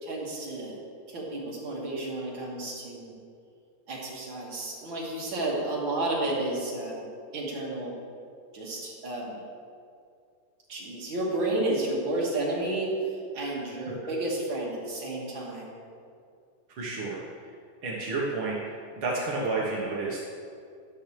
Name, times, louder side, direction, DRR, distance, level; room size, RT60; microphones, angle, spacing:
voice 1, 0.0-0.8 1.1-3.1 3.9-7.0 7.3-7.9 8.5-9.4 10.7-12.9 13.3-15.8, right 2 dB, 40° right, -4 dB, 2.4 m, -31 dB
voice 2, 16.8-17.5 17.8-20.2, right 3 dB, 55° right, -5 dB, 1.5 m, -31 dB
13.0 x 12.0 x 3.4 m, 2.3 s
omnidirectional pair, 4.2 m